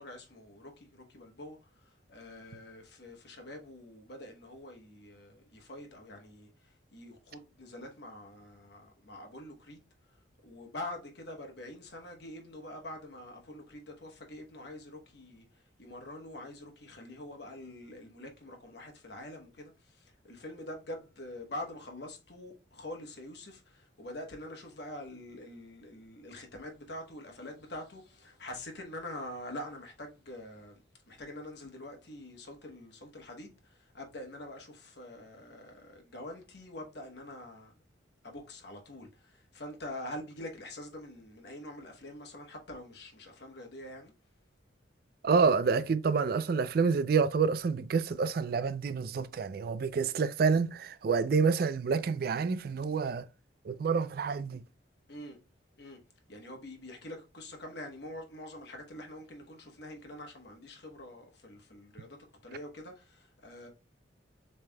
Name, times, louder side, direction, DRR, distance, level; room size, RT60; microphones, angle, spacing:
voice 1, 0.0-9.8 10.4-37.7 38.2-44.1 55.1-55.4 55.8-56.0 56.3-62.2 62.4-63.7, left 1 dB, 55° left, 1.1 m, -45 dB
voice 2, 45.2-53.3 53.6-54.6, right 5 dB, 50° right, 0.3 m, -28 dB
7.1 x 3.3 x 2.2 m
head